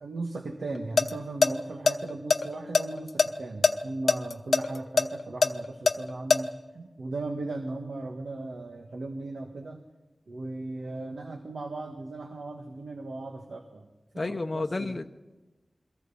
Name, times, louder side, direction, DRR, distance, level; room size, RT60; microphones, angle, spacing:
voice 1, 0.0-9.8 10.3-13.9 14.1-15.0, right 2 dB, 80° right, 3 dB, 1.6 m, -37 dB
sound 1, 0.8-1.1 1.4-1.5 1.9-3.3 3.6-3.7 4.1-6.4, left 3 dB, 70° left, 0.9 m, -21 dB
voice 2, 14.2-15.1, left 2 dB, 40° left, 5 dB, 0.7 m, -31 dB
30.0 x 22.5 x 4.2 m, 1.1 s
wide cardioid pair, 85°, 0 cm